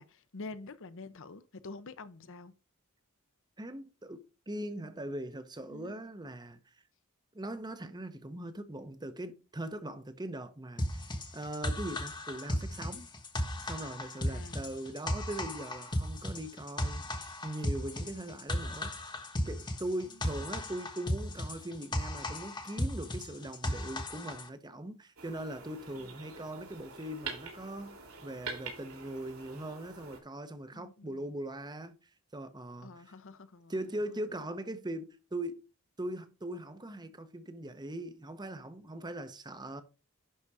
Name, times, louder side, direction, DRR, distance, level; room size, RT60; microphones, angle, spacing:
voice 1, 0.0-2.5 5.7-6.0 14.3-14.7 30.7-31.3 32.8-33.7 34.1-34.2, left 3 dB, 65° left, 0.8 m, -47 dB
voice 2, 3.6-6.6 7.3-13.1 13.6-17.1 17.4-19.1 19.4-32.0 32.3-33.1 33.7-35.6 36.0-39.8, right 1 dB, 20° right, 0.9 m, -40 dB
sound 1, 10.8-24.5, left 1 dB, 20° left, 1.3 m, -35 dB
sound 2, 25.2-30.2, right 4 dB, 75° right, 3.2 m, -45 dB
11.5 x 4.2 x 4.8 m
head